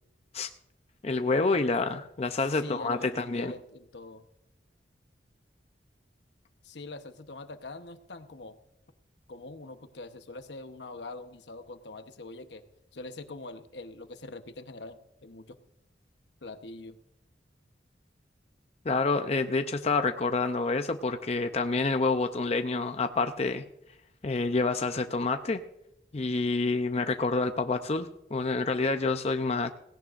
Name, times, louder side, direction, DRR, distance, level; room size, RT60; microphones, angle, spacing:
voice 1, 1.0-3.5 18.8-23.6 24.2-25.6 26.1-29.7, left 3 dB, 35° left, 7 dB, 0.6 m, -28 dB
voice 2, 2.4-4.3 6.6-8.6 9.3-12.6 12.9-15.6 16.4-17.0, left 2 dB, 75° left, 8 dB, 1.0 m, -43 dB
17.0 x 17.0 x 2.5 m, 0.80 s
head